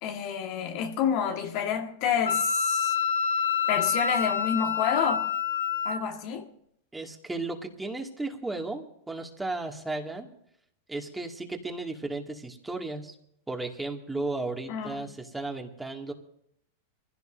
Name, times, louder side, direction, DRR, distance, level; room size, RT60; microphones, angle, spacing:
voice 1, 0.0-2.9 3.7-5.3 5.8-6.5 14.7-15.0, left 8 dB, 55° left, 1.7 m, -29 dB
Wind instrument woodwind instrument, 2.3-6.0, left 6 dB, 90° left, 1.7 m, -27 dB
voice 2, 6.9-10.3 10.9-13.2 13.5-16.1, right 2 dB, 10° right, 2.2 m, -34 dB
24.0 x 16.0 x 2.6 m
hypercardioid pair, 105°, 0 cm